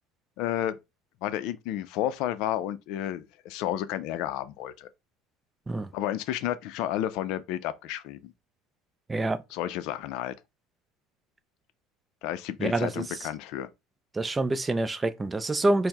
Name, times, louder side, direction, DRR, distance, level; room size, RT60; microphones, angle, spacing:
voice 1, 0.4-0.8 1.2-4.9 5.9-8.3 9.5-10.3 12.2-13.7, left 12 dB, 65° left, 0.4 m, -31 dB
voice 2, 9.1-9.4 12.6-13.3 14.1-15.9, right 2 dB, 15° right, 0.4 m, -27 dB
4.4 x 2.1 x 3.5 m
supercardioid pair, 120°, 0 cm